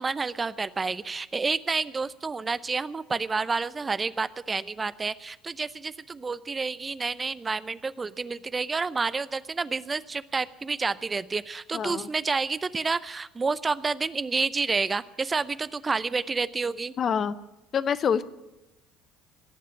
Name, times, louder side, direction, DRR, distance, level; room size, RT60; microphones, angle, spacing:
voice 1, 0.0-16.9, right 4 dB, 25° right, 16 dB, 0.6 m, -29 dB
voice 2, 11.7-12.1 17.0-17.3 17.7-18.2, left 7 dB, 45° left, 15 dB, 0.7 m, -26 dB
17.0 x 7.5 x 9.7 m, 1.0 s
hypercardioid pair, 65°, 0 cm